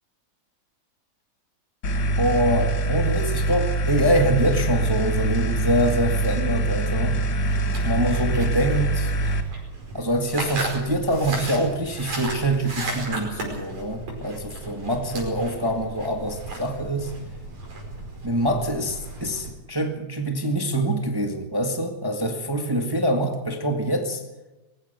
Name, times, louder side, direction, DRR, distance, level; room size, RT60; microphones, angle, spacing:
sound 1, 1.8-9.4, right 2 dB, 45° left, 2.1 m, -24 dB
voice 1, 2.2-7.2 7.8-9.1 9.9-17.1 18.2-24.2, right 1 dB, 10° right, 4 dB, 1.4 m, -25 dB
sound 2, 7.4-19.5, right 2 dB, 70° right, 6.3 m, -35 dB
20.5 x 16.0 x 8.2 m, 1.1 s
omnidirectional pair, 3.3 m